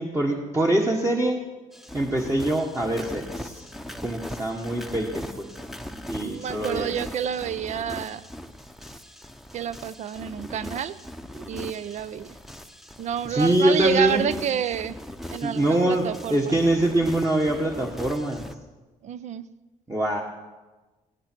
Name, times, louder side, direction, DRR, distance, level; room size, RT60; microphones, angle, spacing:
voice 1, 0.0-1.4 1.9-3.7 4.0-5.5 6.1-6.9 13.3-14.3 15.4-18.4 19.9-20.2, right 1 dB, 20° right, 0 dB, 1.6 m, -24 dB
sound 1, 1.7-18.5, left 1 dB, ahead, 0.9 m, -40 dB
voice 2, 6.2-8.2 9.5-11.0 11.3-12.4 13.0-15.0 15.3-16.6 19.0-19.5, right 9 dB, 60° right, 16 dB, 0.7 m, -29 dB
18.0 x 17.0 x 4.6 m, 1.2 s
cardioid pair, 105°, 14 cm